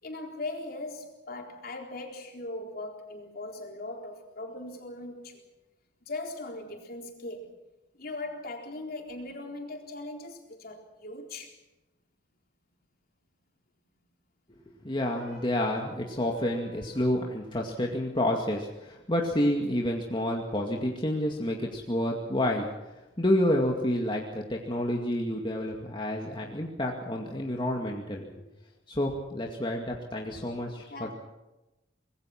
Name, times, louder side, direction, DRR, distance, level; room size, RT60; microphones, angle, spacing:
voice 1, 0.0-5.4 6.1-7.6 7.9-11.6 30.9-31.1, left 2 dB, 50° left, 2 dB, 4.1 m, -39 dB
voice 2, 14.8-22.7 23.2-28.4 28.9-30.9, left 1 dB, 25° left, 0 dB, 2.2 m, -29 dB
sound 1, 15.0-17.2, right 4 dB, 60° right, 6.8 m, -49 dB
25.0 x 21.0 x 6.0 m, 0.99 s
head